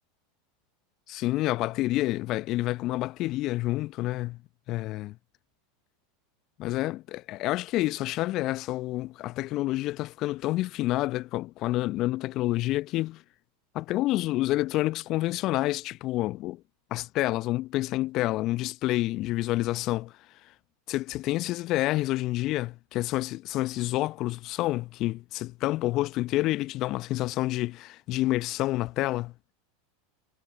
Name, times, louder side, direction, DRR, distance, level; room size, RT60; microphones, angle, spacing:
voice 1, 1.1-4.4 4.7-5.1 6.6-13.2 13.7-16.6 16.9-20.1 20.9-29.3, left 17 dB, 45° left, 0.8 m, -28 dB
figure-of-eight pair, 85°, 0 cm